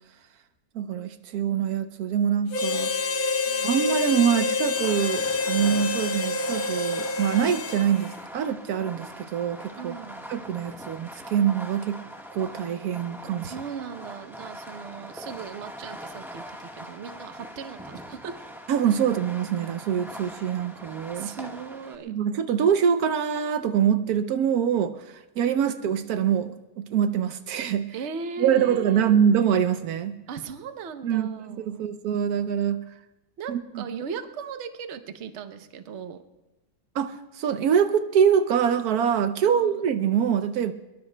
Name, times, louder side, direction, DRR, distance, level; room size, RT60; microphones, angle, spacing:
voice 1, 0.7-2.9 3.6-9.9 10.3-12.0 12.3-13.5 18.7-21.3 22.1-27.9 28.4-30.2 31.0-32.9 33.5-33.8 36.9-40.7, right 8 dB, 75° right, 9 dB, 1.1 m, -24 dB
Harmonica, 2.5-8.2, left 4 dB, 45° left, 0.7 m, -27 dB
Fireworks, 4.7-21.9, equal, ahead, 1.1 m, -42 dB
voice 2, 9.8-10.3 13.5-18.3 21.1-22.1 27.9-29.2 30.3-31.8 33.4-36.2 39.5-39.8, right 6 dB, 55° right, 8 dB, 1.0 m, -38 dB
24.0 x 22.5 x 2.2 m, 1.0 s
omnidirectional pair, 1.6 m